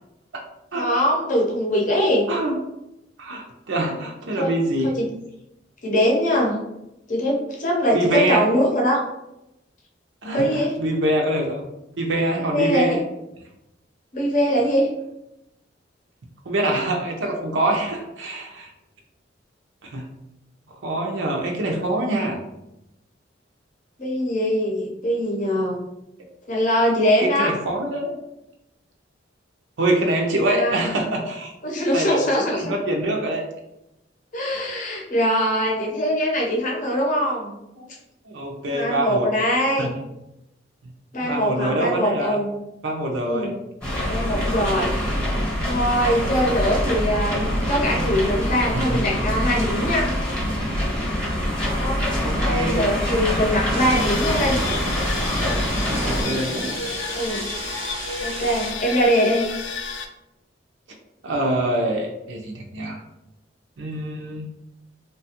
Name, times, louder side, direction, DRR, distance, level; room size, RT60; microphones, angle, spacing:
voice 1, 0.7-2.3 4.4-4.5 4.8-5.1 5.8-6.6 7.1-9.0 10.3-10.7 12.5-13.0 14.1-14.9 24.0-25.8 26.5-27.5 30.5-30.9 31.6-32.6 34.3-37.5 38.7-39.9 41.1-42.5 43.2-43.6 44.1-45.2 45.6-50.1 51.8-52.0 52.4-54.6 57.1-57.4 58.2-59.5, equal, 45° left, -1 dB, 0.7 m, -22 dB
voice 2, 2.3-2.6 3.2-4.9 7.9-8.5 10.2-11.6 12.0-13.0 16.5-18.7 19.8-20.1 20.7-22.4 27.2-28.1 29.8-31.5 31.9-32.2 32.5-33.4 34.5-34.7 37.7-37.9 38.3-39.3 39.8-39.9 41.2-42.4 42.8-43.5 44.1-44.2 48.7-49.0 52.2-52.9 56.0-56.6 61.2-63.0 63.8-64.5, right 1 dB, 85° right, 1 dB, 0.6 m, -25 dB
sound 1, 43.8-56.2, equal, 5° left, 0.8 m, -24 dB
Thunder / Rain, 53.7-58.7, right 3 dB, 30° right, 0.4 m, -33 dB
sound 2, 53.9-60.1, left 5 dB, 80° left, 0.3 m, -31 dB
2.9 x 2.3 x 2.8 m, 0.88 s
head